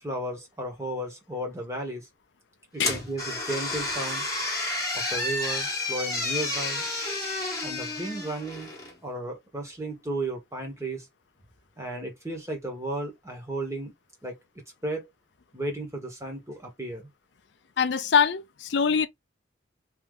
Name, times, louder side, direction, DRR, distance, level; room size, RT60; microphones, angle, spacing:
voice 1, 0.0-2.1 2.7-4.3 4.9-6.9 7.6-8.7 9.0-11.1 11.8-13.9 14.2-14.3 14.8-15.1 15.5-17.1, right 1 dB, 15° right, 1.4 m, -34 dB
sound 1, 2.8-9.0, left 2 dB, 20° left, 1.4 m, -31 dB
voice 2, 17.8-19.1, left 6 dB, 65° left, 0.5 m, -23 dB
3.2 x 3.0 x 3.8 m
head